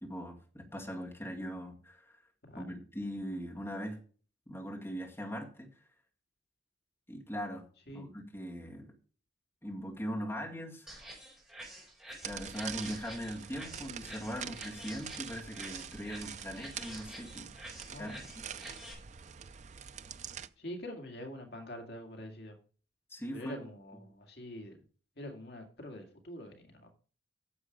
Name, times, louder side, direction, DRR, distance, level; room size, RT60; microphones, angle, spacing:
voice 1, 0.0-2.2 2.6-4.0 4.5-5.8 7.1-7.7 7.9-9.0 9.6-10.9 12.2-17.5 17.9-18.2 18.5-18.7 23.1-23.7, equal, 15° left, 0 dB, 2.0 m, -40 dB
sound 1, 10.9-18.9, right 1 dB, 5° right, 4.5 m, -49 dB
sound 2, 12.2-20.5, right 8 dB, 40° right, 0.4 m, -45 dB
voice 2, 17.9-18.2 20.6-22.6 23.3-24.8 25.2-26.9, left 1 dB, 60° left, 4 dB, 2.0 m, -45 dB
9.9 x 7.3 x 5.1 m, 0.40 s
head